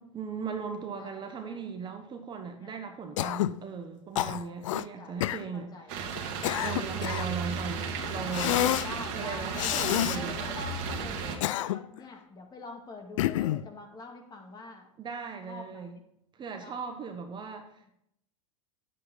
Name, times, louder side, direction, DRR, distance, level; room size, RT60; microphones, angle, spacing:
voice 1, 0.0-6.0 6.6-10.4 15.0-16.0 16.3-17.9, right 5 dB, 25° right, 6 dB, 1.1 m, -38 dB
voice 2, 1.0-1.6 2.6-2.8 4.5-4.7 5.0-5.2 5.5-5.9 6.7-7.1 8.8-14.9 15.5-16.0 16.6-16.8, left 3 dB, 25° left, 2 dB, 2.2 m, -45 dB
Cough, 3.2-3.6 4.2-4.9 5.2-5.4 6.2-7.3 8.3-8.9 9.6-10.2 11.2-12.0 13.2-13.7, left 14 dB, 70° left, 0.4 m, -28 dB
sound 1, 5.9-11.4, right 5 dB, 55° right, 1.9 m, -34 dB
9.8 x 8.0 x 4.0 m, 0.75 s
hypercardioid pair, 100°, 17 cm